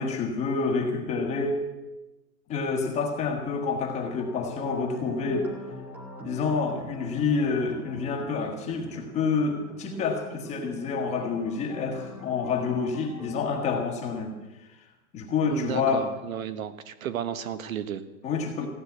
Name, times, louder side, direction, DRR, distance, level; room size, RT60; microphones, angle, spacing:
voice 1, 0.0-1.6 2.5-5.5 6.2-14.8 15.1-16.1 18.2-18.7, left 4 dB, 15° left, 2 dB, 1.3 m, -28 dB
sound 1, 3.9-13.7, right 1 dB, 5° right, 0.7 m, -43 dB
voice 2, 15.5-18.0, right 9 dB, 60° right, 12 dB, 1.4 m, -33 dB
15.5 x 9.7 x 8.1 m, 1.1 s
hypercardioid pair, 170°, 46 cm